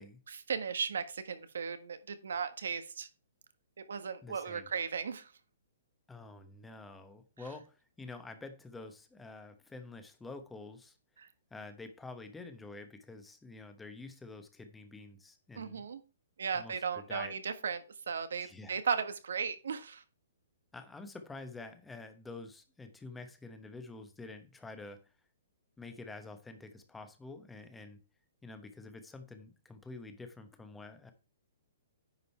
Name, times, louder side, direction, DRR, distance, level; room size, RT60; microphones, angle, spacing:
voice 1, 0.3-3.1 3.8-5.3 11.2-11.3 15.6-16.0 16.4-20.0, right 6 dB, 85° right, 11 dB, 1.4 m, -36 dB
voice 2, 4.2-4.7 6.1-11.0 11.5-15.8 16.5-17.3 18.4-18.8 20.7-25.0 25.8-28.0 28.4-31.1, left 3 dB, 5° left, 8 dB, 1.1 m, -48 dB
9.9 x 5.3 x 4.4 m, 0.32 s
hypercardioid pair, 165°, 0 cm